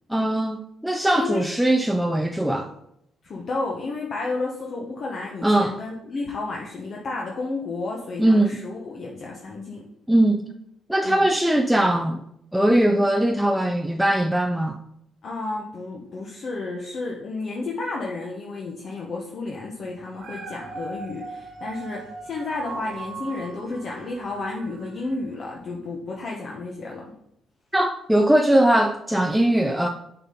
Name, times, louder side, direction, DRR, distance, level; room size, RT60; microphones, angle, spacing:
voice 1, 0.1-0.6 0.8-2.7 5.4-5.8 8.2-8.6 10.1-10.5 10.9-12.2 12.5-14.8 27.7-29.9, right 1 dB, 5° right, 0.4 m, -20 dB
voice 2, 3.2-9.9 11.0-11.3 15.2-27.1, left 3 dB, 50° left, 0.9 m, -32 dB
Dog, 20.0-25.3 25.8-25.9, right 4 dB, 60° right, 1.4 m, -39 dB
6.7 x 4.3 x 3.8 m
cardioid pair, 100°, 0 cm